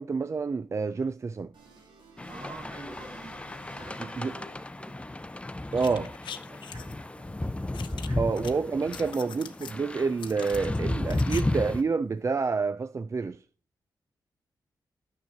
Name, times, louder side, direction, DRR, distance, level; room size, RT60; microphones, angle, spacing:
voice 1, 0.0-1.5 4.2-4.3 5.7-6.1 8.2-13.4, right 4 dB, 40° right, 0.4 m, -28 dB
sound 1, 1.5-4.9, right 3 dB, 90° right, 2.5 m, -53 dB
sound 2, 2.2-11.8, left 2 dB, 15° left, 0.6 m, -34 dB
voice 2, 2.3-4.9 6.4-7.4 7.9-9.3, right 2 dB, 65° right, 4.0 m, -49 dB
sound 3, 5.7-6.9 7.7-8.5 8.8-9.8 10.2-11.4 11.7-11.8, left 8 dB, 85° left, 0.7 m, -43 dB
9.3 x 6.6 x 4.2 m
cardioid pair, 60°, 8 cm